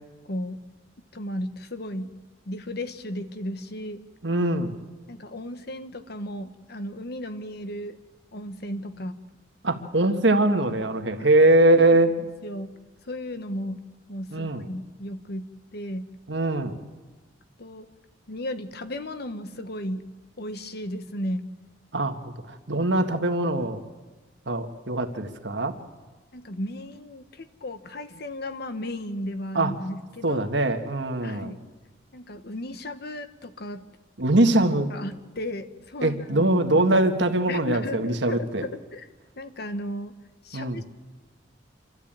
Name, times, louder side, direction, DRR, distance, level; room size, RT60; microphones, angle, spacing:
voice 1, 0.3-0.6 1.1-2.1 2.5-4.0 5.1-8.0 8.3-9.2 11.2-11.3 11.7-12.7 13.1-16.1 17.6-17.9 18.3-20.0 20.4-21.5 26.3-30.4 31.2-31.6 32.1-33.8 34.9-36.5 37.5-39.1 39.4-40.1 40.4-40.8, left 1 dB, 60° left, 10 dB, 1.3 m, -35 dB
voice 2, 4.2-4.7 9.6-12.1 14.3-14.7 16.3-16.8 21.9-22.2 22.5-23.8 24.5-25.7 29.5-29.7 30.2-31.5 34.2-34.9 36.0-38.6 40.5-40.8, right 2 dB, 70° right, 6 dB, 1.7 m, -22 dB
27.0 x 13.0 x 8.9 m, 1.3 s
head